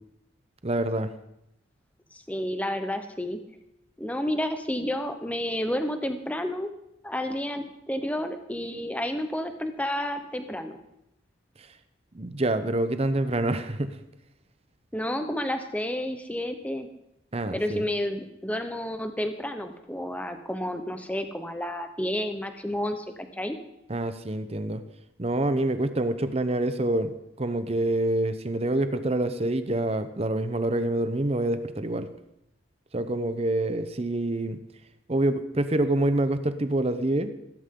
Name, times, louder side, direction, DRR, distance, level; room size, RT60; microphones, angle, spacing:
voice 1, 0.6-1.1 12.1-14.0 17.3-17.8 23.9-24.8 25.2-27.1 27.4-32.1 32.9-34.6 35.1-37.3, right 1 dB, 30° right, 10 dB, 0.8 m, -26 dB
voice 2, 2.3-3.4 4.0-6.7 7.0-10.8 14.9-16.9 17.5-23.6, left 1 dB, 5° left, 7 dB, 0.9 m, -30 dB
15.0 x 13.5 x 3.8 m, 0.82 s
head